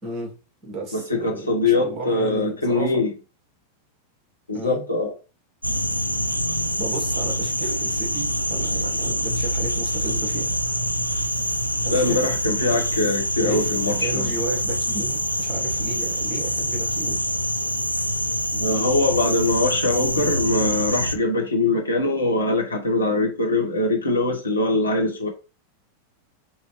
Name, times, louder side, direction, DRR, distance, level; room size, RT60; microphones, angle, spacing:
voice 1, 0.0-0.3 0.6-2.9 4.5-4.8 6.8-10.6 11.8-12.2 13.4-13.7 14.0-17.2 18.5-19.3, right 3 dB, 25° right, 2.3 m, -33 dB
voice 2, 0.9-3.1 4.5-5.1 11.9-14.3 18.6-25.3, left 2 dB, 80° left, 1.1 m, -22 dB
sound 1, 5.6-21.2, equal, 90° right, 0.4 m, -25 dB
4.7 x 2.9 x 3.1 m
figure-of-eight pair, 90°, 0 cm